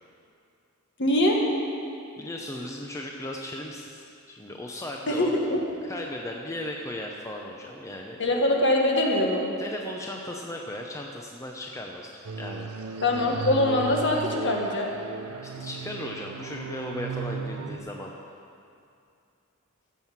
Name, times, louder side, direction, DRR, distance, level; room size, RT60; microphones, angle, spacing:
voice 1, 1.0-1.4 5.1-5.6 8.2-9.5 13.0-14.9, left 1 dB, 55° left, 0 dB, 1.6 m, -23 dB
voice 2, 2.2-5.3 5.8-8.2 9.6-12.7 15.5-18.3, left 1 dB, 15° left, 0 dB, 0.7 m, -36 dB
sound 1, 12.2-17.8, right 4 dB, 90° right, 0.7 m, -35 dB
15.0 x 6.3 x 7.3 m, 2.5 s
head